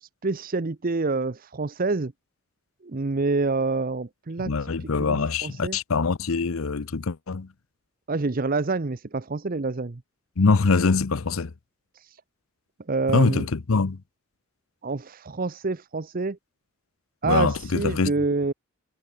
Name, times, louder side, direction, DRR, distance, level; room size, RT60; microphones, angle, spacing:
voice 1, 0.0-2.1 2.8-5.8 8.1-10.0 11.9-12.2 12.9-13.5 14.8-16.4 17.2-18.5, right 3 dB, 45° right, 0.8 m, -27 dB
voice 2, 4.4-7.5 10.4-11.5 13.1-14.0 17.2-18.1, left 4 dB, 85° left, 0.7 m, -23 dB
head